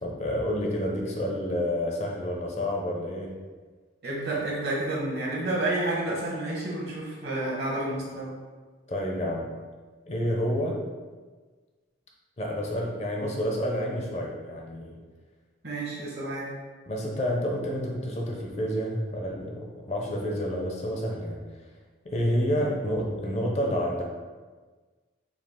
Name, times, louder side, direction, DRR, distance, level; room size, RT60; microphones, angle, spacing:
voice 1, 0.0-3.4 8.9-9.5 10.1-10.8 12.4-15.0 16.9-21.4 22.0-24.0, equal, 35° left, -1 dB, 0.5 m, -29 dB
voice 2, 4.0-8.3 15.6-16.5 22.6-22.7, right 2 dB, 55° right, -4 dB, 1.1 m, -30 dB
4.8 x 2.3 x 3.6 m, 1.4 s
head